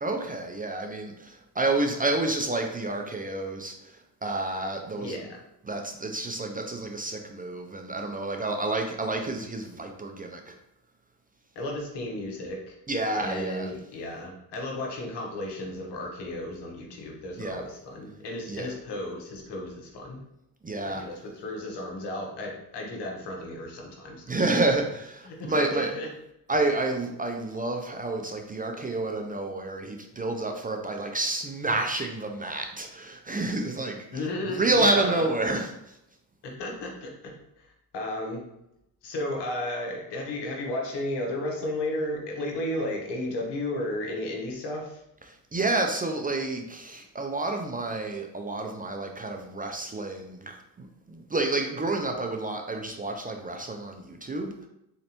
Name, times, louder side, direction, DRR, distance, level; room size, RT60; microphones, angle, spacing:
voice 1, 0.0-5.2 5.6-10.6 12.9-13.7 17.4-17.6 18.5-18.7 20.6-21.0 24.3-25.9 26.5-36.0 45.3-54.7, right 2 dB, 20° right, 3 dB, 0.5 m, -29 dB
voice 2, 5.0-5.3 11.5-12.7 13.2-20.2 20.8-24.4 25.2-26.1 34.1-35.2 36.4-38.4 39.0-45.0, left 1 dB, 70° left, 0 dB, 1.2 m, -34 dB
3.9 x 3.3 x 2.9 m, 0.83 s
supercardioid pair, 70°, 43 cm